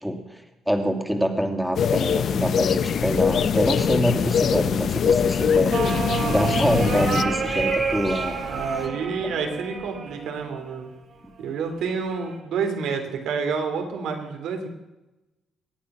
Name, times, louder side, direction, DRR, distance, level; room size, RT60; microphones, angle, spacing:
voice 1, 0.0-8.4, equal, ahead, 4 dB, 2.5 m, -25 dB
sound 1, 1.7-7.2, left 7 dB, 60° left, 0.8 m, -23 dB
sound 2, 3.0-8.9, left 2 dB, 25° left, 2.9 m, -39 dB
sound 3, 5.7-10.7 11.9-12.4, right 4 dB, 60° right, 3.3 m, -29 dB
voice 2, 8.4-10.9 11.4-14.7, right 5 dB, 80° right, 5 dB, 3.1 m, -29 dB
23.5 x 9.2 x 6.2 m, 1.0 s
cardioid pair, 90°, 0 cm